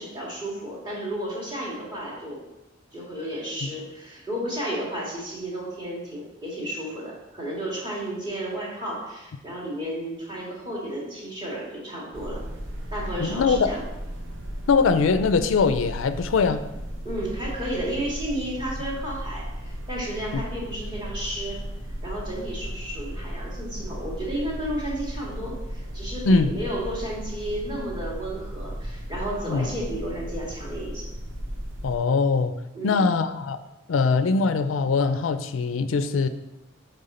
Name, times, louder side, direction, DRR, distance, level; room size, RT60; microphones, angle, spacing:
voice 1, 0.0-2.4 2.9-12.4 12.9-13.8 17.0-21.6 22.0-31.1 32.7-33.1, right 1 dB, 25° right, -5 dB, 1.9 m, -32 dB
sound 1, 12.1-32.0, equal, 70° right, 0.9 m, -35 dB
voice 2, 13.2-13.7 14.7-16.6 20.3-20.4 26.3-26.5 29.5-29.7 31.8-32.6 32.8-33.6 33.9-36.3, left 4 dB, 90° left, 11 dB, 0.4 m, -22 dB
7.7 x 3.5 x 4.2 m, 0.96 s
head